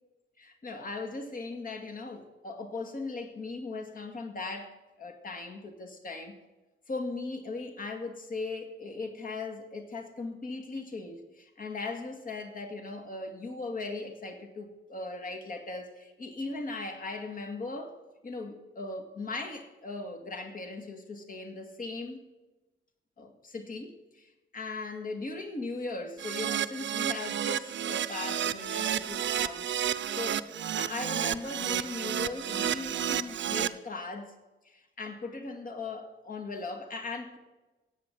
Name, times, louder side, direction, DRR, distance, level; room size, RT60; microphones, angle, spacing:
voice 1, 0.4-6.3 6.9-17.9 18.2-22.2 23.2-30.4 30.8-34.3 34.6-37.4, left 3 dB, 45° left, 5 dB, 2.1 m, -38 dB
Keyboard (musical), 26.2-33.7, right 10 dB, 65° right, 0.6 m, -31 dB
17.5 x 8.2 x 7.4 m, 1.1 s
wide cardioid pair, 180°, 20 cm